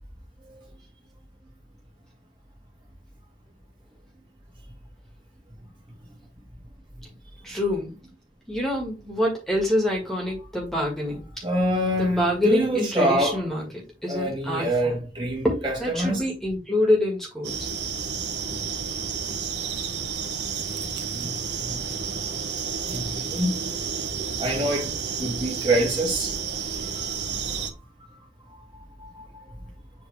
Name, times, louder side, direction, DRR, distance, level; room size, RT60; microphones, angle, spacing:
voice 1, 7.4-7.9 8.5-11.5 12.0-15.0 15.4-17.7, left 1 dB, ahead, 1.9 m, -26 dB
voice 2, 11.4-13.5 14.1-16.3 21.1-22.2 22.9-23.7 24.4-26.6 26.9-27.3 27.6-27.7 28.1-28.2 28.5-29.6, right 1 dB, 25° right, 2.3 m, -27 dB
sound 1, 17.4-27.7, right 6 dB, 90° right, 1.3 m, -31 dB
7.8 x 4.0 x 3.4 m
head